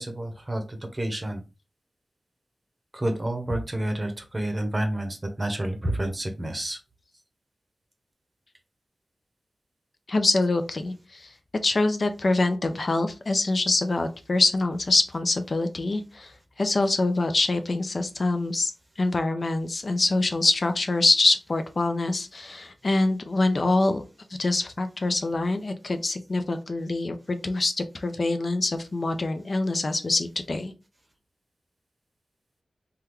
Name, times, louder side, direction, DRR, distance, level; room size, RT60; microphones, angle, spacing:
voice 1, 0.0-1.4 2.9-6.8, right 1 dB, 25° right, 5 dB, 0.7 m, -29 dB
voice 2, 10.1-11.3 11.6-16.3 16.6-18.7 19.0-24.0 24.4-30.7, left 2 dB, 50° left, 7 dB, 0.4 m, -25 dB
3.5 x 2.2 x 3.0 m, 0.31 s
wide cardioid pair, 80°, 0 cm